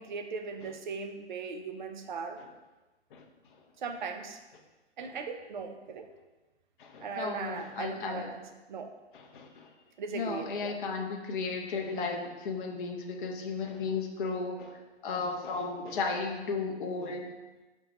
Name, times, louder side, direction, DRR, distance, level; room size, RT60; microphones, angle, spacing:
voice 1, 0.0-2.4 3.8-4.4 5.0-6.1 7.0-8.9 10.0-10.8, right 5 dB, 45° right, 6 dB, 0.4 m, -38 dB
voice 2, 6.8-8.3 9.1-9.7 10.1-14.8 15.0-17.3, left 4 dB, 50° left, 1 dB, 0.5 m, -34 dB
5.0 x 2.2 x 2.8 m, 1.1 s
figure-of-eight pair, 130°, 34 cm